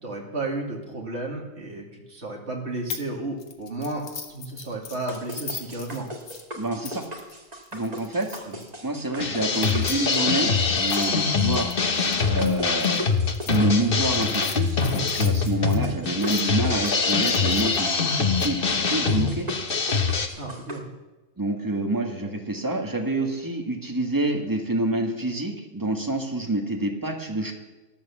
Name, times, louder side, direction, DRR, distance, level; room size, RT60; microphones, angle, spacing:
voice 1, 0.0-4.0 4.3-6.1 8.4-8.6 20.3-20.9, right 2 dB, 55° right, 0 dB, 2.9 m, -33 dB
sound 1, 2.9-3.1 3.4-8.7 9.5-13.6 14.1-16.4 16.8-18.5, left 5 dB, 85° left, 1.8 m, -40 dB
sound 2, 5.1-20.8, equal, 30° right, 1.8 m, -39 dB
voice 2, 6.5-7.0 7.7-8.4 8.8-11.7 12.3-13.1 13.5-19.5 21.4-27.5, right 2 dB, 15° right, 2 dB, 1.8 m, -27 dB
sound 3, 9.2-20.3, left 5 dB, 45° left, 1.3 m, -24 dB
13.0 x 12.5 x 7.3 m, 1.2 s
omnidirectional pair, 1.4 m